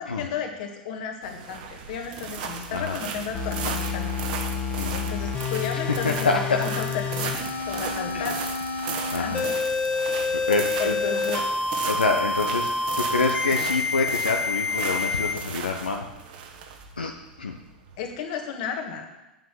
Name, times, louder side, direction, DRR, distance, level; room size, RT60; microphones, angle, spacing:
voice 1, 0.2-4.1 4.9-8.4 9.1-9.6 10.8-11.4 18.0-19.1, left 7 dB, 55° left, 4 dB, 1.9 m, -33 dB
sound 1, 1.2-18.1, right 6 dB, 60° right, 1.5 m, -36 dB
sound 2, 3.3-15.3, left 4 dB, 30° left, 1.4 m, -28 dB
voice 2, 5.7-6.6 8.1-8.2 9.1-9.4 10.3-10.9 11.9-16.1 17.0-17.1 17.4-17.6, left 3 dB, 85° left, 2 dB, 0.9 m, -26 dB
9.0 x 5.7 x 7.6 m, 1.0 s
figure-of-eight pair, 90°, 5 cm